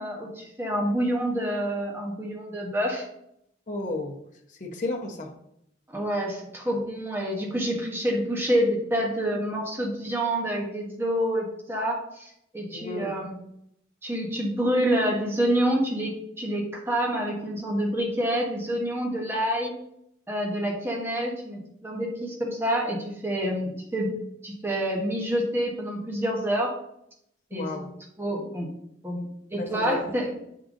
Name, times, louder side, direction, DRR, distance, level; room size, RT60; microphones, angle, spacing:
voice 1, 0.0-3.0 5.9-13.4 14.0-16.1 16.4-19.7 20.3-24.1 24.4-26.7 27.5-27.7 28.2-28.7 29.0-30.3, equal, 15° right, -2 dB, 1.2 m, -27 dB
voice 2, 3.7-4.2 4.6-5.3 12.7-13.1 27.5-27.9 29.6-30.0, left 2 dB, 40° left, 1 dB, 0.9 m, -32 dB
6.7 x 3.8 x 3.7 m, 0.76 s
head